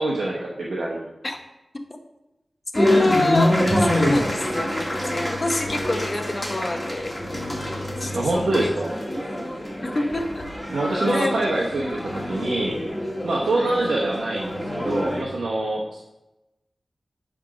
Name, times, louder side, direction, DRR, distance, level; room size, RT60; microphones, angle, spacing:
voice 1, 0.0-1.1 8.1-9.0 10.7-12.8 13.2-16.0, right 2 dB, 85° right, -4 dB, 1.1 m, -25 dB
voice 2, 2.7-7.2 8.0-8.7 9.8-10.5 11.1-11.4 13.5-13.8, left 2 dB, 40° left, 5 dB, 0.9 m, -26 dB
sound 1, 2.7-15.2, left 1 dB, 10° left, 2.0 m, -26 dB
10.0 x 3.6 x 4.9 m, 0.95 s
wide cardioid pair, 60°, 0 cm